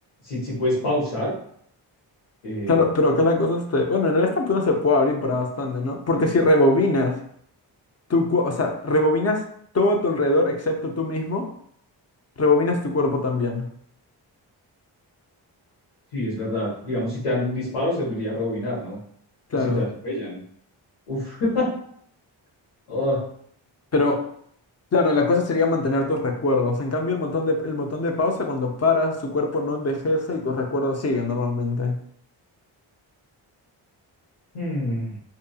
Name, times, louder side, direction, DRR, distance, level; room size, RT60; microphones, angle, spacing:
voice 1, 0.2-1.3 2.4-2.8 16.1-19.0 19.6-20.4 21.1-21.7 22.9-23.2 34.5-35.2, left 1 dB, 85° left, -10 dB, 1.2 m, -26 dB
voice 2, 2.7-7.2 8.1-9.4 9.7-11.5 12.4-13.7 19.5-19.8 23.9-24.2 24.9-31.9, left 2 dB, 30° left, 2 dB, 0.6 m, -22 dB
2.6 x 2.5 x 2.3 m, 0.65 s
supercardioid pair, 45°, 50 cm